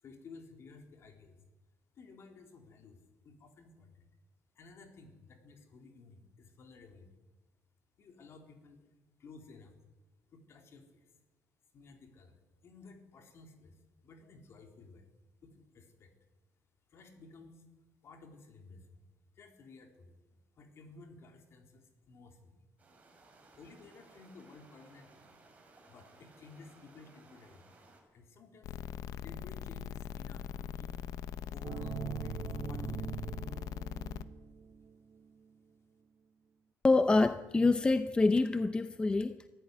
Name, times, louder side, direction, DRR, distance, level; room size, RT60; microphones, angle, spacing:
voice 1, 0.0-1.4 1.9-4.1 4.5-7.1 8.0-8.9 9.2-9.7 10.3-11.1 11.7-15.1 15.4-16.1 16.9-17.6 18.0-19.0 19.3-20.2 20.6-22.6 23.6-25.2 25.9-27.6 28.1-28.8 29.2-31.0 31.5-33.2, left 3 dB, 50° left, 3.8 m, -55 dB
sound 1, 22.8-28.0, right 2 dB, 25° right, 5.9 m, -60 dB
sound 2, 28.6-34.2, left 9 dB, 80° left, 1.0 m, -41 dB
sound 3, 31.6-35.3, right 9 dB, 50° right, 1.0 m, -42 dB
voice 2, 36.8-39.5, left 3 dB, 15° left, 0.7 m, -26 dB
24.0 x 15.5 x 9.8 m
cardioid pair, 150°, 6 cm